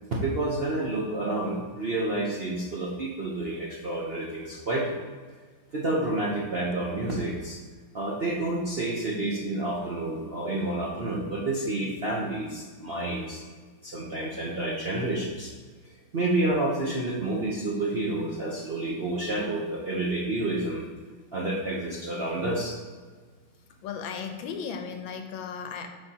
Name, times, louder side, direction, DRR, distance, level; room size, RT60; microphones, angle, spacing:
voice 1, 0.1-5.0 5.7-7.6 7.9-13.4 13.8-15.5 16.1-20.8 21.3-22.7, right 2 dB, 50° right, -5 dB, 0.7 m, -29 dB
voice 2, 23.8-25.9, left 6 dB, 80° left, 5 dB, 1.5 m, -35 dB
7.9 x 5.7 x 2.8 m, 1.5 s
omnidirectional pair, 2.1 m